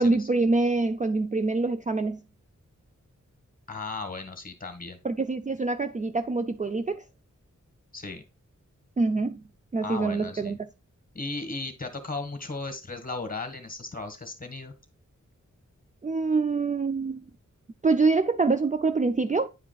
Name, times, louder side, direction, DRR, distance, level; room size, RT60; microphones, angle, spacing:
voice 1, 0.0-2.2 5.0-7.0 9.0-9.4 9.7-10.6 16.0-17.2 17.8-19.5, right 3 dB, 25° right, 0.3 m, -25 dB
voice 2, 3.7-5.0 7.9-8.2 9.8-10.6 11.1-14.7, left 3 dB, 30° left, 1.5 m, -36 dB
9.8 x 4.8 x 2.3 m
wide cardioid pair, 100°, 30 cm